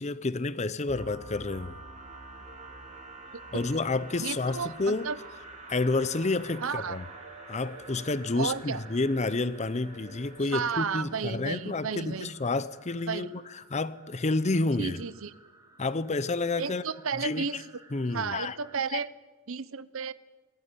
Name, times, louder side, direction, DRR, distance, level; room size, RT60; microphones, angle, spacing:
voice 1, 0.0-1.8 3.5-5.1 5.7-7.0 7.5-13.4 13.7-15.0 15.8-16.8 17.2-17.6 17.9-18.5 18.9-19.0, left 3 dB, 35° left, 0.7 m, -29 dB
sound 1, 0.9-12.6, right 2 dB, 35° right, 3.2 m, -47 dB
voice 2, 3.9-5.2 6.6-7.0 8.4-8.8 10.5-12.3 13.1-13.3 14.7-15.3 16.6-17.7 18.1-19.1 19.5-20.1, right 5 dB, 70° right, 0.8 m, -33 dB
sound 2, 4.7-18.8, right 2 dB, 15° right, 2.1 m, -55 dB
20.5 x 15.0 x 9.0 m
head